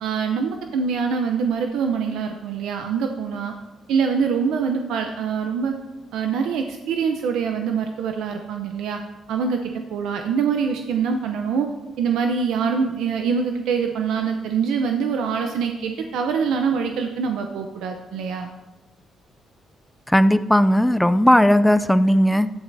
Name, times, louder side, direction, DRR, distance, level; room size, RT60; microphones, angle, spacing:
voice 1, 0.0-3.5 3.9-5.8 6.1-9.0 9.3-11.7 12.0-18.5, right 6 dB, 85° right, 5 dB, 0.6 m, -24 dB
voice 2, 20.1-22.5, equal, 5° left, 13 dB, 0.4 m, -16 dB
12.0 x 10.5 x 2.7 m, 1.1 s
cardioid pair, 90°, 0 cm